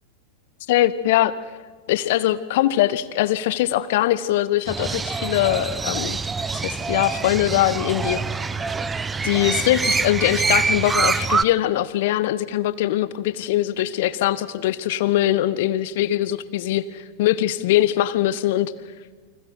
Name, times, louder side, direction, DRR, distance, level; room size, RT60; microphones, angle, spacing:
voice 1, 0.7-1.3 1.9-6.2 6.5-8.5 9.2-18.7, left 14 dB, 50° left, 16 dB, 1.1 m, -22 dB
Crow, 4.7-11.4, right 4 dB, 15° right, 0.7 m, -25 dB
29.5 x 25.0 x 4.7 m, 1.5 s
figure-of-eight pair, 90°, 0 cm